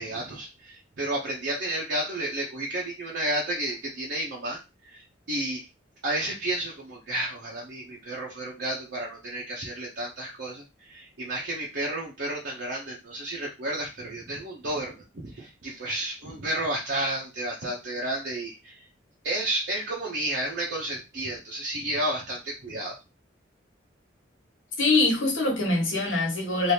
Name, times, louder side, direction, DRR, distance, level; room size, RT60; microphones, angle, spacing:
voice 1, 0.0-5.7 6.0-18.8 19.2-23.0, right 1 dB, 60° right, 0.7 m, -32 dB
voice 2, 24.8-26.7, left 2 dB, 85° left, 1.3 m, -23 dB
3.3 x 2.5 x 2.8 m
head